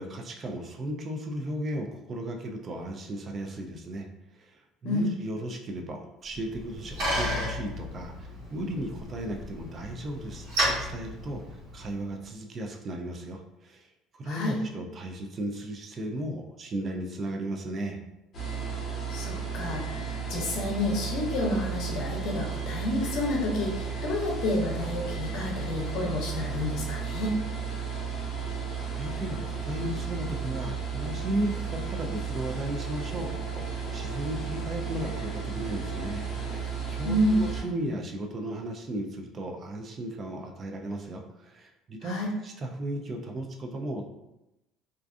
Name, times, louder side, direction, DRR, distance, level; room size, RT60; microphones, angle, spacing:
voice 1, 0.0-4.1 4.3-11.4 11.7-18.0 28.7-42.2 42.4-44.0, right 1 dB, 25° right, 3 dB, 0.3 m, -35 dB
Bicycle, 6.3-12.0, equal, 60° right, 1.2 m, -33 dB
voice 2, 14.2-14.6 19.1-27.4 37.0-37.4 42.0-42.3, left 1 dB, 60° left, -2 dB, 0.7 m, -29 dB
sound 1, 18.3-37.6, right 6 dB, 30° left, 0.8 m, -34 dB
2.4 x 2.3 x 2.4 m, 0.92 s
cardioid pair, 165°, 0 cm